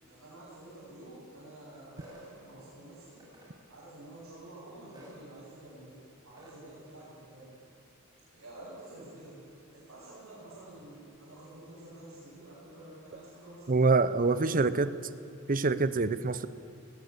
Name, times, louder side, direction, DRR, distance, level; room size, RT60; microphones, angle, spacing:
voice 1, 0.0-3.2 3.7-6.0 6.2-7.5 8.3-9.3 9.7-13.9 14.3-14.8 15.2-15.3, right 1 dB, 65° right, -9 dB, 7.0 m, -49 dB
sound 1, 2.0-2.3 3.2-3.5 4.9-5.2 6.4-6.6, left 1 dB, 20° right, 6.3 m, -52 dB
voice 2, 13.7-14.9 15.5-16.5, right 3 dB, 40° right, 14 dB, 0.7 m, -25 dB
20.0 x 19.0 x 8.2 m, 2.8 s
head